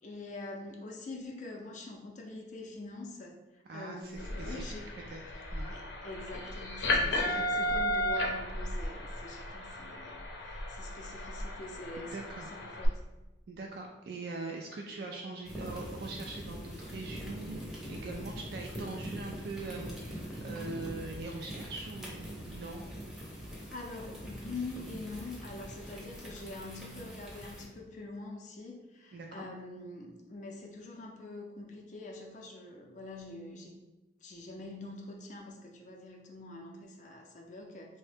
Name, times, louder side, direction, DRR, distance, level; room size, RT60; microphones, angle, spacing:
voice 1, 0.0-4.9 5.7-12.2 12.5-13.0 23.7-33.8 34.2-38.0, left 2 dB, 45° left, 1 dB, 0.5 m, -45 dB
voice 2, 3.7-4.7 5.1-5.7 7.0-7.7 12.0-12.5 13.5-22.8 29.1-29.5, right 3 dB, 65° right, 1 dB, 0.3 m, -42 dB
sound 1, 4.1-12.9, left 1 dB, 90° left, 0.6 m, -34 dB
sound 2, 15.4-27.6, equal, ahead, 0.6 m, -43 dB
3.6 x 2.1 x 3.3 m, 1.1 s
head